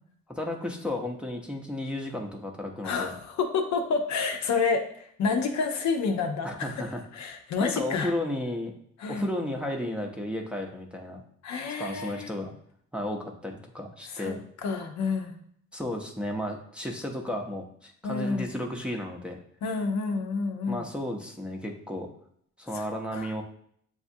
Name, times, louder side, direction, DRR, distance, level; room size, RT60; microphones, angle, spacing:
voice 1, 0.3-3.1 6.4-7.0 7.6-8.7 9.1-11.2 11.8-12.5 12.9-14.4 15.7-19.4 20.7-22.1 22.6-23.4, left 1 dB, 5° right, 0 dB, 0.6 m, -33 dB
voice 2, 2.8-4.8 5.2-6.5 7.1-8.1 9.0-9.3 11.4-12.3 14.1-14.3 14.6-15.4 18.0-18.5 19.6-20.8 23.1-23.3, left 4 dB, 65° left, 5 dB, 0.7 m, -28 dB
6.9 x 2.4 x 2.6 m, 0.66 s
cardioid pair, 90°, 30 cm